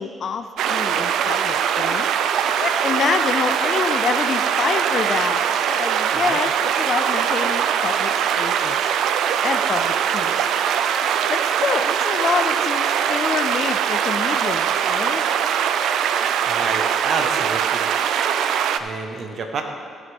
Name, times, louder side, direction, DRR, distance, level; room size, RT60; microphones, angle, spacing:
voice 1, 0.0-2.3 2.6-8.9 9.4-10.3 10.7-15.2, left 6 dB, 55° left, 8 dB, 0.5 m, -27 dB
sound 1, 0.6-18.8, right 8 dB, 80° right, 0.4 m, -21 dB
voice 2, 16.5-17.9 18.8-19.6, right 4 dB, 60° right, 4 dB, 1.3 m, -29 dB
15.0 x 8.0 x 3.6 m, 2.3 s
cardioid pair, 90°, 0 cm